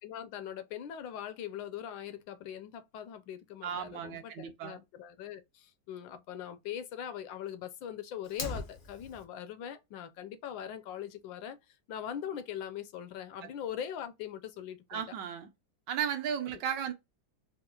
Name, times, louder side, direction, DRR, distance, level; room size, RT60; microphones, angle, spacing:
voice 1, 0.0-15.0, left 9 dB, 75° left, 1.2 m, -41 dB
voice 2, 3.6-4.8 13.4-13.5 14.9-15.5 15.9-16.9, right 8 dB, 75° right, 1.2 m, -35 dB
Fire, 8.2-9.2, left 3 dB, 55° left, 0.6 m, -39 dB
4.3 x 2.0 x 2.3 m
omnidirectional pair, 2.1 m